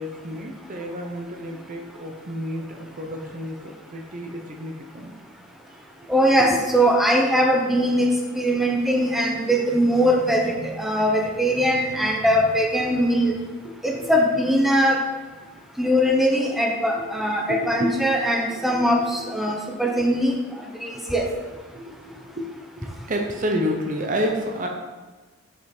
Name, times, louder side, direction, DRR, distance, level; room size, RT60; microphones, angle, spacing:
voice 1, 0.0-5.1 6.4-6.6 14.0-14.1 17.0-17.1 17.5-18.2 18.5-19.3 19.9-20.1 21.7-22.5 22.8-24.7, equal, 35° right, 2 dB, 0.7 m, -30 dB
voice 2, 6.1-8.1 8.3-13.3 13.8-15.0 15.8-20.4 20.8-21.2, equal, ahead, 0 dB, 0.8 m, -21 dB
6.4 x 5.7 x 4.4 m, 1.2 s
head